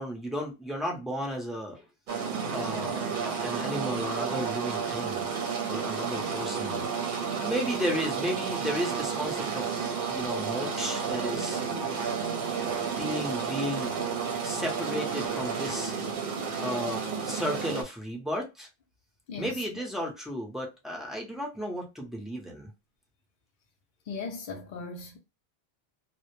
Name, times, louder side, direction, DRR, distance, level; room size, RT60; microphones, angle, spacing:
voice 1, 0.0-1.8 2.5-5.3 5.7-6.9 7.3-9.8 10.1-11.6 12.4-12.5 13.0-13.9 14.4-15.9 16.6-18.7 19.4-22.7, equal, ahead, 0.5 m, -34 dB
sound 1, 2.1-17.8, right 6 dB, 60° right, 0.7 m, -31 dB
voice 2, 24.1-25.2, left 4 dB, 60° left, 0.6 m, -37 dB
2.1 x 2.1 x 2.9 m
omnidirectional pair, 1.0 m